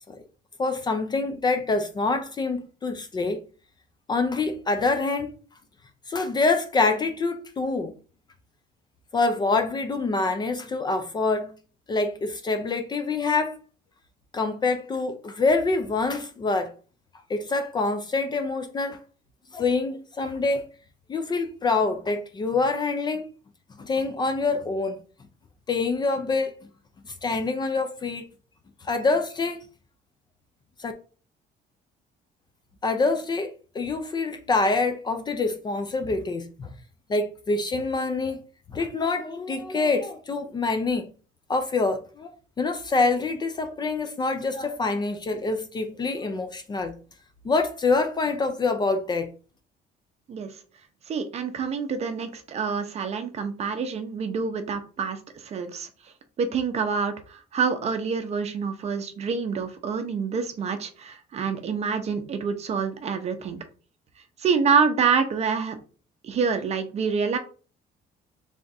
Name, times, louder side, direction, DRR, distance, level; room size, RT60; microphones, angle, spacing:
voice 1, 0.6-3.4 4.1-5.3 6.1-7.9 9.1-11.5 11.9-13.6 14.3-16.7 17.3-19.0 19.5-20.7 21.1-23.3 23.8-25.0 25.7-26.6 27.2-28.3 28.8-29.6 30.8-30.9 32.8-36.7 37.1-38.4 38.7-41.1 41.5-46.9 47.4-49.3, left 3 dB, 25° left, 0.4 m, -26 dB
voice 2, 51.1-55.9 56.4-63.6 64.4-65.8 66.2-67.4, right 5 dB, 40° right, 0.6 m, -27 dB
3.4 x 2.4 x 4.0 m
cardioid pair, 150°, 17 cm